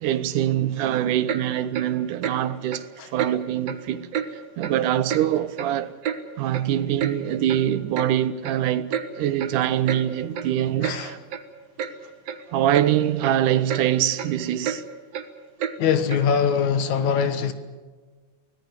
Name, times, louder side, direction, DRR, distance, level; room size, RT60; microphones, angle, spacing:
voice 1, 0.0-2.9 3.1-4.1 4.6-5.9 6.4-11.2 12.5-14.8, right 11 dB, 80° right, 2.6 m, -24 dB
Clock, 1.3-1.4 1.7-1.9 2.2-2.4 2.7-2.8 3.2-3.3 3.7-3.8 4.1-4.3 4.6-4.8 5.1-5.2 5.6-6.2 6.5-6.6 7.0-7.1 7.5-7.6 8.0-8.1 8.4-8.6 8.9-9.1 9.4-9.6 9.9-10.0 10.3-10.5 10.8-11.0 11.3-11.4 11.8-11.9 12.3-12.4 12.7-12.9 13.2-13.4 13.7-13.9 14.1-14.3 14.6-14.8 15.1-15.3 15.6-15.8 16.1-16.2, right 8 dB, 60° right, 2.4 m, -29 dB
voice 2, 10.8-11.2 15.8-17.5, left 7 dB, 70° left, 2.7 m, -22 dB
24.5 x 18.0 x 8.3 m
omnidirectional pair, 3.6 m